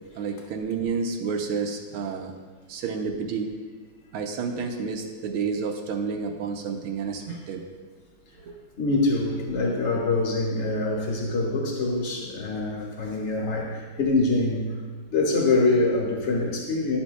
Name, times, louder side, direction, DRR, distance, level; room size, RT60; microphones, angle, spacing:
voice 1, 0.1-2.3 2.7-3.5 4.1-7.6 8.4-8.6, right 5 dB, 85° right, 3 dB, 1.6 m, -30 dB
voice 2, 8.8-14.7 15.1-17.0, left 2 dB, 35° left, -2 dB, 1.6 m, -24 dB
11.5 x 7.0 x 2.3 m, 1.5 s
omnidirectional pair, 2.3 m